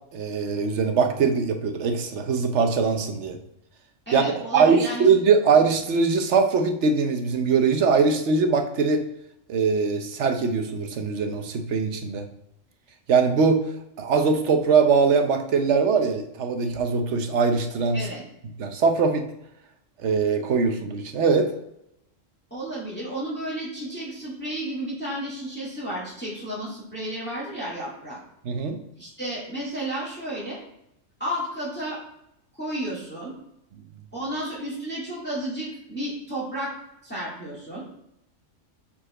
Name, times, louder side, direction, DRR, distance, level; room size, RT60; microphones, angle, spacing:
voice 1, 0.1-3.4 4.1-4.2 4.5-9.0 9.5-12.3 13.1-13.6 14.0-18.1 18.6-19.3 20.0-21.5 28.4-28.8, right 5 dB, 65° right, 6 dB, 1.0 m, -21 dB
voice 2, 4.1-5.1 17.9-18.2 22.5-28.2 29.0-30.6 31.2-32.0 32.6-33.3 34.1-36.7 37.0-37.8, right 1 dB, 10° left, -8 dB, 1.9 m, -32 dB
5.0 x 4.3 x 4.9 m, 0.81 s
omnidirectional pair, 1.3 m